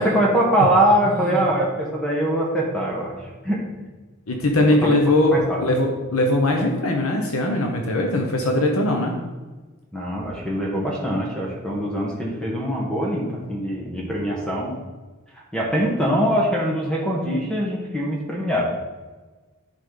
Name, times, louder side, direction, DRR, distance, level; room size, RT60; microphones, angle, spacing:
voice 1, 0.0-3.6 4.8-4.9 5.3-5.6 9.9-14.7 15.3-18.7, right 1 dB, 5° left, -3 dB, 1.2 m, -23 dB
voice 2, 4.3-9.1, left 1 dB, 75° left, 2 dB, 1.0 m, -21 dB
11.0 x 5.0 x 3.9 m, 1.3 s
head